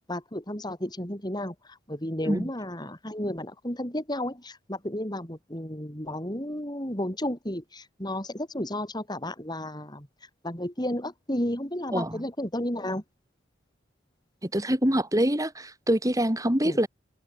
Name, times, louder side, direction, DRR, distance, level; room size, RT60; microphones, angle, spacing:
voice 1, 0.1-10.1 10.4-13.0 16.6-16.8, left 1 dB, 20° left, 5.9 m, -32 dB
voice 2, 11.9-12.2 14.4-16.9, equal, 15° right, 3.9 m, -25 dB
head